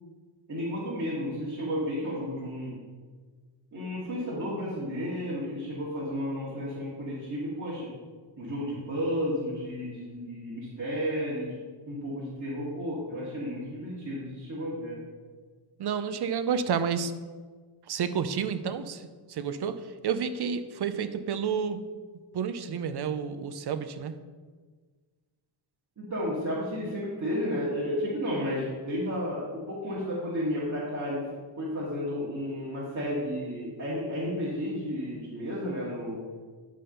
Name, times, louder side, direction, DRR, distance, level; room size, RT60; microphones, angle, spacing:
voice 1, 0.5-2.7 3.7-7.9 8.4-11.6 11.9-15.0 26.0-31.2 31.6-36.2, equal, 35° right, -9 dB, 2.3 m, -32 dB
voice 2, 15.8-17.1 17.9-21.8 22.3-24.1, right 7 dB, 50° right, 11 dB, 0.7 m, -30 dB
10.5 x 3.7 x 5.5 m, 1.5 s
cardioid pair, 90°, 49 cm